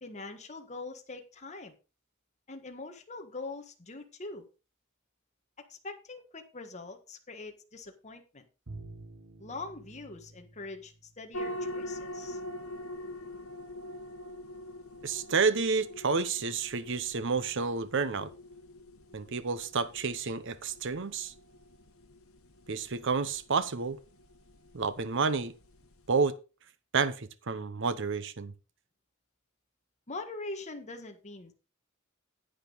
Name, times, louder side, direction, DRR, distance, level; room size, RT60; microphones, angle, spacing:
voice 1, 0.0-1.7 2.5-4.5 5.7-8.4 9.4-12.4 30.1-31.5, left 3 dB, 35° left, 1.5 m, -43 dB
Bowed string instrument, 8.7-11.7, right 2 dB, 80° right, 1.4 m, -49 dB
sound 1, 11.3-26.1, left 1 dB, 90° left, 1.1 m, -44 dB
voice 2, 15.0-18.3 19.1-21.3 22.7-24.0 24.7-25.5 26.1-26.4 26.9-28.5, right 4 dB, 65° right, 0.8 m, -30 dB
10.0 x 9.0 x 3.9 m
head